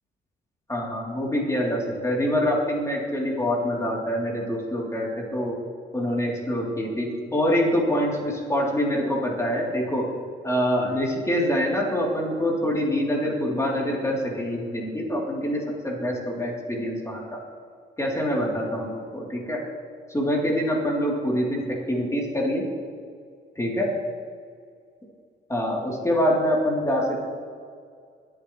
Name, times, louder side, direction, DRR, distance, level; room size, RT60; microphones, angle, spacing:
voice 1, 0.7-5.6 5.9-10.0 10.4-17.4 18.0-19.6 20.1-22.6 23.5-23.9 25.5-27.2, equal, 15° left, -3 dB, 3.4 m, -25 dB
22.0 x 8.7 x 3.3 m, 2.2 s
cardioid pair, 90°, 20 cm